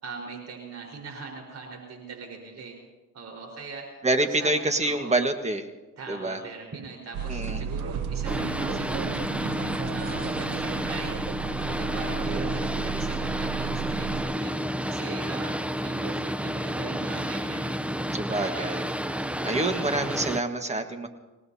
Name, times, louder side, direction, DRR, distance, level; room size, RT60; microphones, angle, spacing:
voice 1, 0.0-2.7 3.1-3.9 4.2-5.2 6.0-11.1 11.5-17.7 18.3-18.7, right 4 dB, 60° right, 0 dB, 4.7 m, -41 dB
voice 2, 4.0-5.7 6.1-6.4 7.3-7.6 12.4-12.5 18.1-18.9 19.4-21.1, right 2 dB, 20° right, 6 dB, 1.6 m, -27 dB
sound 1, 7.1-14.2, right 7 dB, 75° right, 1.0 m, -34 dB
Boat Water vehicle, 8.2-20.4, equal, 5° right, 0.6 m, -30 dB
26.5 x 18.5 x 2.8 m, 1.1 s
cardioid pair, 90°, 30 cm